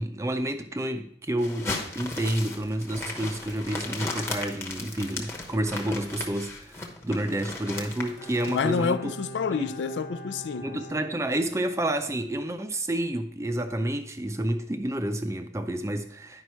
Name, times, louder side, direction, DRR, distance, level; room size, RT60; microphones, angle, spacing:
voice 1, 0.0-9.0 9.5-9.7 10.6-16.4, right 1 dB, 15° right, 0.5 m, -29 dB
sound 1, 1.4-8.6, left 2 dB, 15° left, 0.9 m, -36 dB
Bowed string instrument, 8.2-11.9 12.2-12.3, equal, 55° left, 0.9 m, -43 dB
voice 2, 8.5-10.8, left 5 dB, 85° left, 0.4 m, -28 dB
9.7 x 5.3 x 4.4 m
head